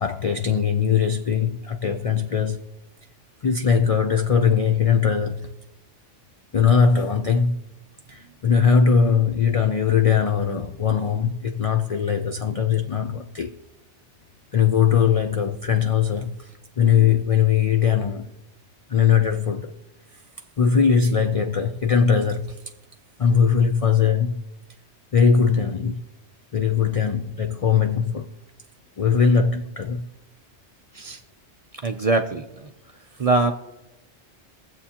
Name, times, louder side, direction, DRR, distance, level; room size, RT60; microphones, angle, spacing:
voice 1, 0.0-2.7 3.4-5.5 6.5-7.6 8.1-13.6 14.5-18.3 18.9-19.8 20.6-22.6 23.2-24.4 25.1-26.0 26.5-28.3 29.0-30.0 30.9-31.2, left 6 dB, 60° left, 0.3 m, -20 dB
voice 2, 31.8-32.7 33.2-33.5, right 3 dB, 50° right, 0.4 m, -21 dB
22.5 x 7.5 x 2.8 m
omnidirectional pair, 1.2 m